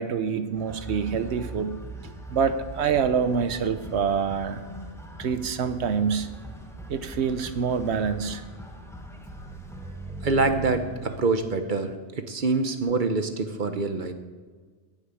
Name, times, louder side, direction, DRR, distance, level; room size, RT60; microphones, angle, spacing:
voice 1, 0.0-4.6 5.2-6.3 6.9-8.4, right 6 dB, 80° right, 11 dB, 1.1 m, -26 dB
sound 1, 0.6-11.2, right 1 dB, 5° left, 0.9 m, -40 dB
voice 2, 10.2-14.1, right 3 dB, 50° right, 8 dB, 0.9 m, -25 dB
9.1 x 7.7 x 8.9 m, 1.5 s
omnidirectional pair, 1.1 m